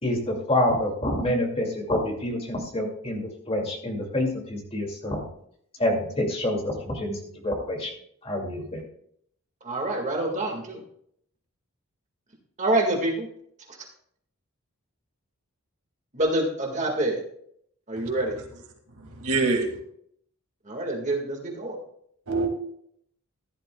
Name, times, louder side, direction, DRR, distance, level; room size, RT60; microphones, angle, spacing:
voice 1, 0.0-3.2 3.5-5.3 5.8-7.2 7.4-7.9 8.2-8.8, left 1 dB, 25° left, 1 dB, 2.4 m, -27 dB
voice 2, 9.6-10.8 12.6-13.3 13.7-13.8 16.1-17.2 17.9-18.4 20.7-21.8, right 1 dB, 35° right, 1 dB, 1.9 m, -26 dB
voice 3, 18.9-19.7 22.3-22.5, right 3 dB, 85° right, 3 dB, 2.2 m, -25 dB
15.0 x 11.5 x 2.3 m, 0.68 s
head